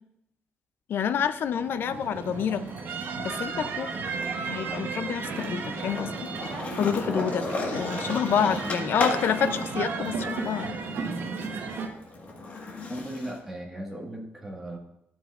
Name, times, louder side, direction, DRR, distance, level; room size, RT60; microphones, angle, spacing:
voice 1, 0.9-2.6 3.2-3.9 4.5-6.3 6.7-7.4 7.7-10.8, left 8 dB, 55° left, 13 dB, 0.4 m, -28 dB
Skateboard, 1.2-2.8 3.1-13.4, left 2 dB, 35° left, 1.5 m, -36 dB
sound 1, 1.5-11.9, right 5 dB, 55° right, 1.0 m, -34 dB
voice 2, 12.9-14.8, right 1 dB, 5° right, -1 dB, 1.6 m, -36 dB
13.0 x 7.3 x 2.4 m, 0.80 s
cardioid pair, 170°, 4 cm